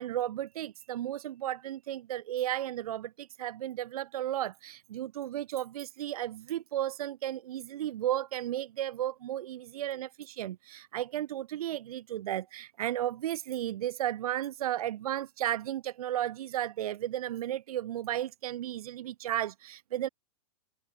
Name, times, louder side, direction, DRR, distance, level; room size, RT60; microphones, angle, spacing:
voice 1, 0.0-20.1, right 12 dB, 70° right, 0.6 m, -34 dB
open air
supercardioid pair, 180°, 19 cm